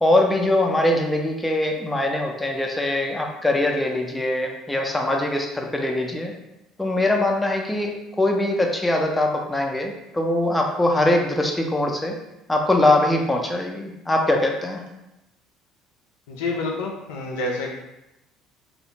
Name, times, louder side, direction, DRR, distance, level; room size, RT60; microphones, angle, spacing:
voice 1, 0.0-6.3 6.8-12.1 12.5-14.8, left 1 dB, 10° left, 1 dB, 0.5 m, -22 dB
voice 2, 16.3-17.7, left 2 dB, 75° left, -1 dB, 0.4 m, -28 dB
2.4 x 2.1 x 2.9 m, 0.91 s
hypercardioid pair, 60°, 0 cm